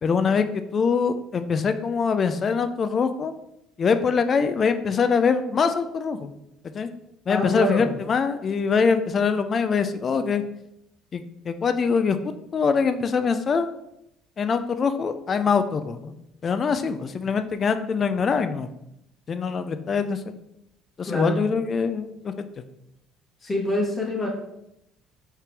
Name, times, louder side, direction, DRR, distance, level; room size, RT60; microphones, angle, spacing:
voice 1, 0.0-3.3 3.8-6.3 6.7-6.9 7.3-10.4 11.1-12.2 12.5-13.7 14.4-16.1 16.4-18.7 19.3-20.2 21.0-22.7, left 5 dB, 40° left, 10 dB, 0.4 m, -23 dB
voice 2, 7.3-7.9 21.1-21.4 23.4-24.3, left 1 dB, 25° left, -3 dB, 1.5 m, -25 dB
4.7 x 3.3 x 3.3 m, 0.82 s
supercardioid pair, 80°, 0 cm